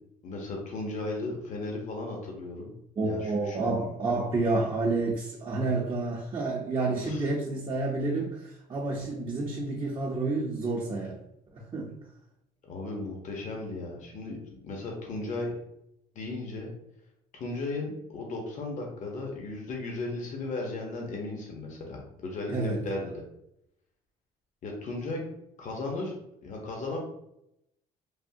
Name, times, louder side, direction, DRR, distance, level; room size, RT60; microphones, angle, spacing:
voice 1, 0.2-2.7 3.0-3.6 6.9-7.2 12.6-14.4 14.6-15.5 16.1-16.7 17.3-23.1 24.6-25.2 25.6-27.0, left 2 dB, 45° left, 0 dB, 0.8 m, -36 dB
voice 2, 3.0-11.2 11.5-11.9 22.5-22.8, right 3 dB, 30° right, -2 dB, 0.6 m, -29 dB
3.4 x 2.1 x 2.7 m, 0.82 s
cardioid pair, 110°, 17 cm